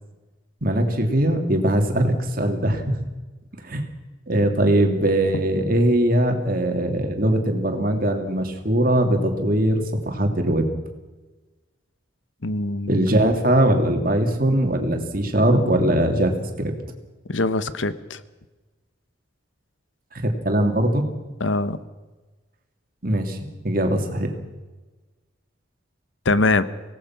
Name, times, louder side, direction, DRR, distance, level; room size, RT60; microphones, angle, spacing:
voice 1, 0.6-3.1 3.6-3.8 4.3-10.6 12.9-16.7 20.1-21.0 23.0-23.4 23.6-24.3, right 1 dB, 45° right, 4 dB, 2.8 m, -21 dB
voice 2, 12.4-13.1 17.3-18.2 21.4-21.8 26.2-26.7, left 2 dB, 75° left, 14 dB, 1.1 m, -22 dB
25.0 x 17.5 x 6.0 m, 1.2 s
head